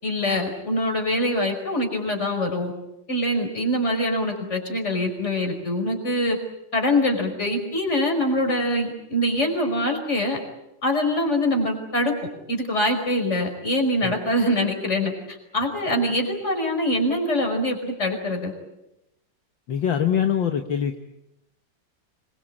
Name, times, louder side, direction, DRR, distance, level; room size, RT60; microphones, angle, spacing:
voice 1, 0.0-2.7 3.1-6.4 6.7-10.4 10.8-12.1 12.5-18.5, left 1 dB, 35° left, 3 dB, 5.5 m, -24 dB
voice 2, 19.7-21.0, left 8 dB, 70° left, 5 dB, 2.0 m, -23 dB
26.0 x 22.5 x 8.7 m, 0.89 s
omnidirectional pair, 2.2 m